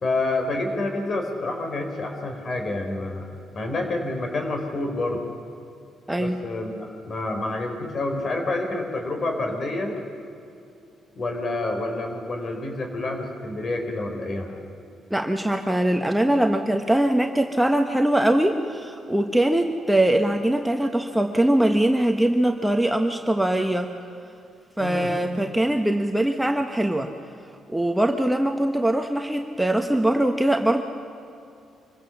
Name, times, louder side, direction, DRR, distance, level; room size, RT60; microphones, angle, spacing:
voice 1, 0.0-3.3 3.5-5.2 6.2-10.0 11.2-14.5 24.8-25.1, left 2 dB, 45° left, 4 dB, 4.2 m, -28 dB
voice 2, 15.1-23.9 24.8-27.1 27.7-30.8, right 1 dB, 5° right, 4 dB, 1.2 m, -22 dB
25.5 x 16.0 x 7.2 m, 2.7 s
cardioid pair, 90°, 0 cm